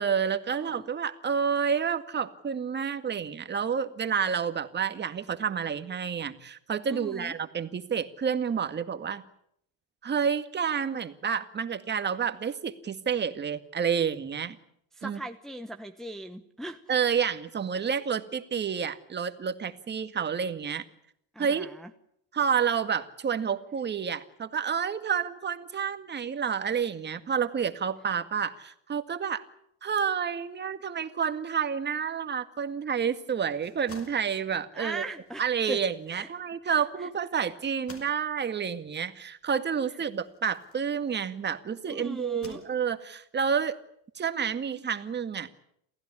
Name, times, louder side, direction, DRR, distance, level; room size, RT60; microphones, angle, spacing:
voice 1, 0.0-9.2 10.0-14.6 15.0-15.2 16.9-20.8 21.4-21.7 22.3-29.4 29.8-35.0 35.4-43.8 44.2-45.5, right 7 dB, 25° right, 9 dB, 2.0 m, -29 dB
voice 2, 0.5-0.9 6.9-7.3 14.9-16.8 21.3-21.9 34.7-35.8 36.1-36.3 36.6-37.1 41.9-42.6, right 1 dB, ahead, 5 dB, 1.0 m, -39 dB
sound 1, 33.5-41.5 42.1-43.2, left 4 dB, 35° left, 5.7 m, -54 dB
28.5 x 15.5 x 9.9 m, 0.74 s
supercardioid pair, 115°, 40 cm